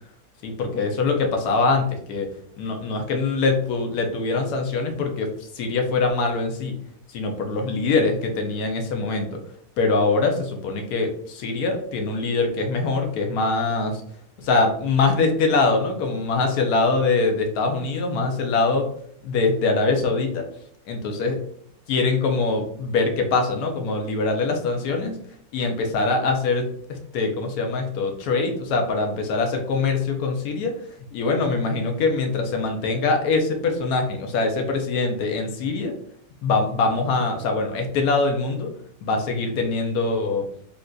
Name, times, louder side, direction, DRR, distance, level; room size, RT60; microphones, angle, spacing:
voice 1, 0.4-2.3 2.6-5.3 5.5-6.7 7.1-9.4 9.8-14.0 14.4-18.9 19.2-20.5 20.9-21.4 21.9-25.2 25.5-30.7 31.1-35.9 36.4-38.7 39.0-40.4, left 3 dB, 85° left, 3 dB, 1.1 m, -23 dB
3.6 x 2.5 x 2.2 m, 0.65 s
omnidirectional pair, 1.5 m